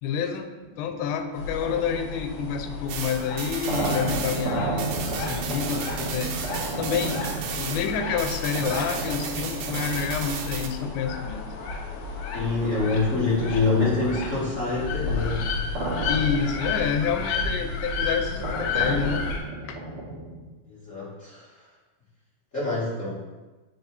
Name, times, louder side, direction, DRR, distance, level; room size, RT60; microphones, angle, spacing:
voice 1, 0.0-11.5 16.1-19.3 19.6-19.8, left 7 dB, 90° left, 7 dB, 2.9 m, -29 dB
sound 1, 0.6-12.3 12.8-20.5, right 2 dB, 60° right, 1.5 m, -34 dB
sound 2, 1.3-19.4, left 4 dB, 75° left, 2.6 m, -32 dB
sound 3, 2.9-7.9 8.2-10.7, right 7 dB, 90° right, 3.0 m, -35 dB
voice 2, 12.3-15.5 20.7-21.5 22.5-23.2, left 3 dB, 45° left, -10 dB, 1.0 m, -25 dB
10.0 x 4.8 x 2.7 m, 1.2 s
omnidirectional pair, 5.0 m